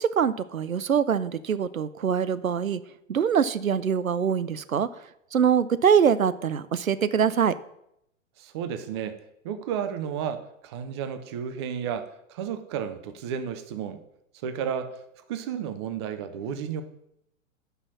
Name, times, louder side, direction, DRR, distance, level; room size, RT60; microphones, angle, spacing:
voice 1, 0.0-2.8 3.1-4.9 5.3-7.5, right 7 dB, 85° right, 15 dB, 0.5 m, -23 dB
voice 2, 8.4-9.2 9.4-14.0 14.4-14.9 15.3-16.8, right 8 dB, 20° right, 10 dB, 0.4 m, -32 dB
5.7 x 5.7 x 6.0 m, 0.78 s
figure-of-eight pair, 105°, 40 cm